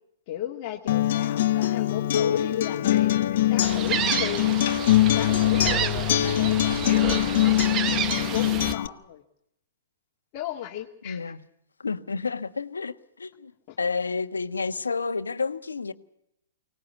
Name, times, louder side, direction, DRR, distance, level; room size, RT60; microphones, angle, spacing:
voice 1, 0.3-4.6 5.0-8.1 8.3-9.2 10.3-11.3 13.7-13.8, left 12 dB, 40° left, 2.1 m, -36 dB
Acoustic guitar, 0.9-8.9, left 13 dB, 55° left, 1.1 m, -23 dB
Gull seagull, 3.6-8.7, right 9 dB, 25° right, 1.1 m, -30 dB
voice 2, 11.0-11.4 11.8-13.5 13.8-15.9, left 4 dB, 85° left, 1.3 m, -30 dB
24.5 x 19.0 x 8.3 m
hypercardioid pair, 120°, 0 cm